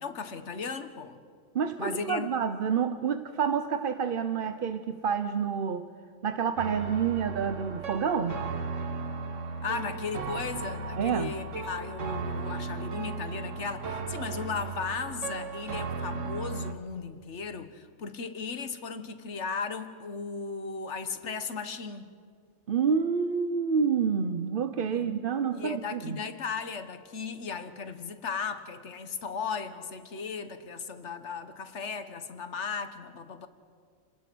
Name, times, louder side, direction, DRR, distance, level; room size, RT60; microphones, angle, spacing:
voice 1, 0.0-1.2 1.8-2.3 9.6-22.1 24.9-25.2 25.5-33.5, left 5 dB, 55° left, 1.5 m, -36 dB
voice 2, 1.5-5.9 6.2-8.4 11.0-11.3 22.7-26.2, right 6 dB, 50° right, 0.8 m, -28 dB
sound 1, 6.6-16.7, right 4 dB, 65° right, 1.6 m, -36 dB
29.0 x 19.5 x 6.1 m
omnidirectional pair, 1.4 m